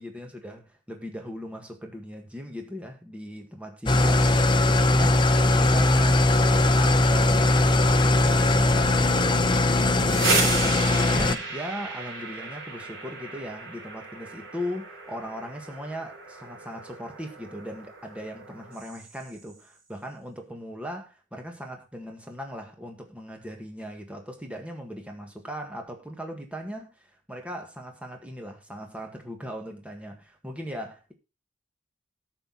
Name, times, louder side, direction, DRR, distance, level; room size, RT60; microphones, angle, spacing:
voice 1, 0.0-31.1, equal, 5° right, 1.7 m, -38 dB
Engine starting / Idling, 3.9-11.4, left 2 dB, 25° left, 0.7 m, -20 dB
sound 1, 9.8-19.5, right 4 dB, 70° right, 3.9 m, -34 dB
10.0 x 6.9 x 4.0 m
head